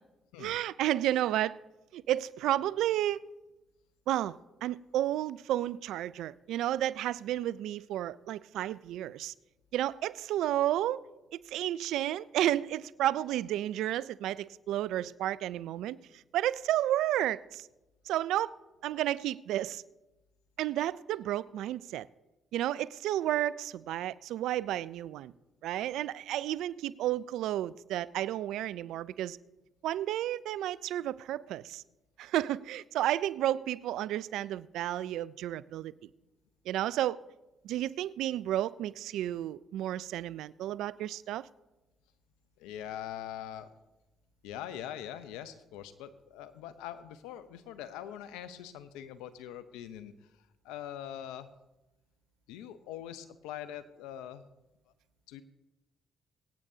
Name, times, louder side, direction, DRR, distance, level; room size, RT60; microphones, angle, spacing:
voice 1, 0.4-1.6 1.9-3.2 4.1-9.3 9.7-11.0 11.5-17.7 18.1-18.6 18.8-19.8 20.6-22.1 22.5-25.3 25.6-29.4 29.8-31.8 32.2-35.9 36.7-37.2 37.6-41.4, right 13 dB, 75° right, 0.3 m, -32 dB
voice 2, 42.6-43.7 44.4-50.1 50.6-51.5 52.5-54.4 55.3-55.4, left 10 dB, 85° left, 0.7 m, -43 dB
24.0 x 8.8 x 2.8 m
hypercardioid pair, 55°, 0 cm